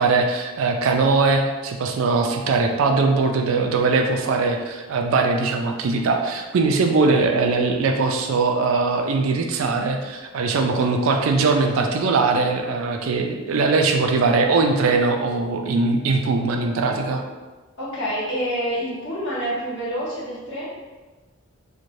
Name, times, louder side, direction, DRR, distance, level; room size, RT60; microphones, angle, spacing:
voice 1, 0.0-17.2, right 3 dB, 80° right, 3 dB, 0.4 m, -21 dB
voice 2, 17.8-20.7, equal, 60° left, -8 dB, 1.1 m, -27 dB
3.0 x 2.1 x 2.5 m, 1.3 s
head